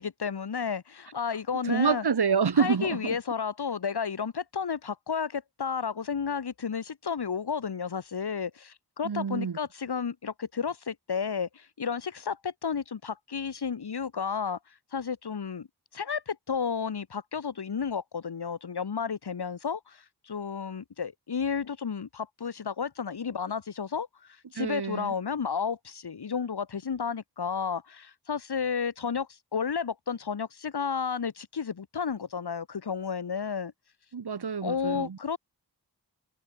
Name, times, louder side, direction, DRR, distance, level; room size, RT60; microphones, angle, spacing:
voice 1, 0.0-2.1 2.6-14.6 14.9-15.7 15.9-33.7 34.6-35.4, left 6 dB, 75° left, 2.5 m, -32 dB
voice 2, 1.6-3.2 9.0-9.6 24.6-25.1 34.1-35.2, right 6 dB, 75° right, 2.6 m, -27 dB
wide cardioid pair, 75°, 39 cm